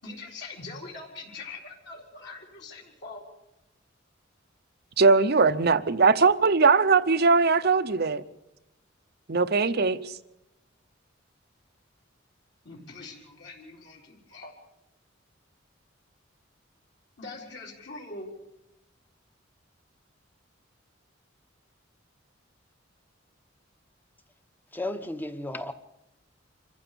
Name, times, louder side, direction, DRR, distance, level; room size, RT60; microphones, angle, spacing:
voice 1, 0.0-3.2 12.6-14.5 17.2-18.3, left 3 dB, 60° left, -2 dB, 4.2 m, -43 dB
voice 2, 5.0-8.2 9.3-10.1, right 4 dB, 50° right, 14 dB, 0.8 m, -20 dB
voice 3, 24.7-25.7, left 1 dB, 10° left, 9 dB, 1.0 m, -33 dB
26.0 x 15.0 x 6.9 m, 0.90 s
head